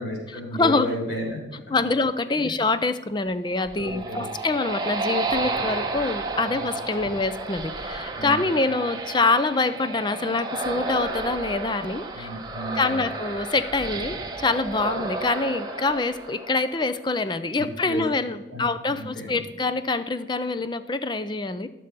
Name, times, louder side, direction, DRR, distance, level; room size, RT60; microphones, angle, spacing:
voice 1, 0.0-1.4 1.7-1.8 3.7-4.3 6.5-6.6 8.2-8.5 12.1-13.0 17.6-18.0 18.5-19.4, left 1 dB, 65° left, -1 dB, 3.8 m, -33 dB
voice 2, 0.5-0.9 1.7-12.3 12.7-21.7, left 3 dB, 25° left, 12 dB, 0.4 m, -25 dB
sound 1, 3.5-17.0, right 3 dB, 20° right, 0.9 m, -32 dB
12.5 x 6.7 x 5.2 m, 1.1 s
head